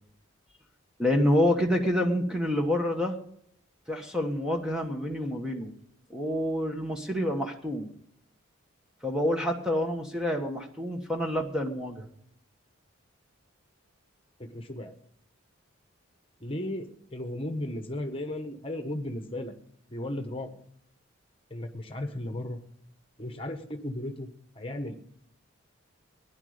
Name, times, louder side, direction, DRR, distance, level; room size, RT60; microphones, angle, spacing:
voice 1, 1.0-3.2 3.9-5.8 6.1-7.9 9.0-12.1, left 1 dB, 5° right, 2 dB, 1.2 m, -27 dB
voice 2, 14.4-14.9 16.4-19.5 19.9-20.6 21.5-22.6 23.2-24.3 24.5-25.0, left 1 dB, 25° left, 6 dB, 1.3 m, -35 dB
16.5 x 10.5 x 5.1 m, 0.70 s
head